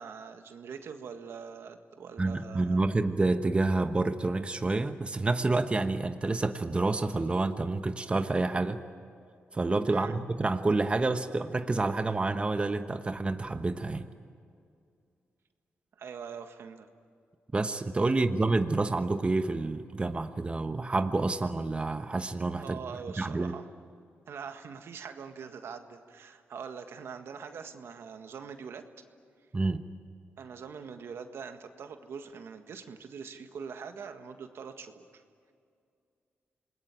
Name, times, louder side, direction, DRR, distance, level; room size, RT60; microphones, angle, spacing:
voice 1, 0.0-2.8 9.9-10.1 16.0-16.9 18.1-18.2 22.6-23.6 24.3-28.9 30.4-35.2, right 6 dB, 75° right, 7 dB, 1.7 m, -43 dB
voice 2, 2.2-8.8 9.5-14.1 17.5-22.8 23.2-23.5 29.5-29.8, right 3 dB, 25° right, 8 dB, 1.1 m, -28 dB
27.5 x 20.5 x 9.0 m, 2.3 s
cardioid pair, 80°, 4 cm